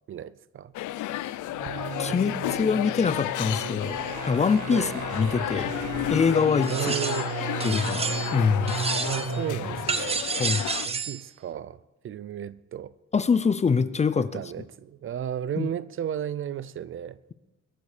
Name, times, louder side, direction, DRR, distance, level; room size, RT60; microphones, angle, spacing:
voice 1, 0.1-0.7 2.0-2.7 4.7-5.0 6.7-7.3 8.9-10.2 10.8-11.8 12.0-12.9 14.2-17.2, right 10 dB, 45° right, 0.5 m, -34 dB
sound 1, 0.7-10.9, left 14 dB, 85° left, 0.6 m, -32 dB
sound 2, 1.5-10.0, right 6 dB, 75° right, 1.9 m, -35 dB
voice 2, 2.0-4.0 4.3-5.7 6.1-6.9 7.6-8.7 10.4-10.6 13.1-14.4 15.6-15.7, left 5 dB, 25° left, 0.5 m, -24 dB
sound 3, 6.6-7.3 7.6-8.4 8.7-9.4 9.9-11.2, right 4 dB, 20° right, 0.9 m, -30 dB
21.5 x 12.5 x 5.0 m
cardioid pair, 175°, 29 cm